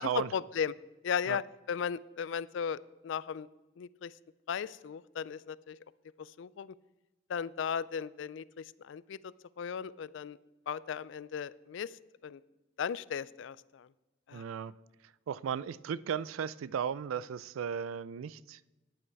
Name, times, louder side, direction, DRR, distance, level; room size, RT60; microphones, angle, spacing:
voice 1, 0.1-0.7 1.0-1.4 1.7-2.8 3.0-3.5 3.8-4.1 4.5-5.8 6.2-6.7 7.3-9.2 9.6-10.4 10.7-11.9 12.2-12.4 12.8-13.9 14.3-14.4, left 7 dB, 70° left, 0.3 m, -36 dB
voice 2, 14.3-14.7 15.3-18.8, right 7 dB, 90° right, 0.3 m, -35 dB
11.0 x 8.9 x 4.6 m
head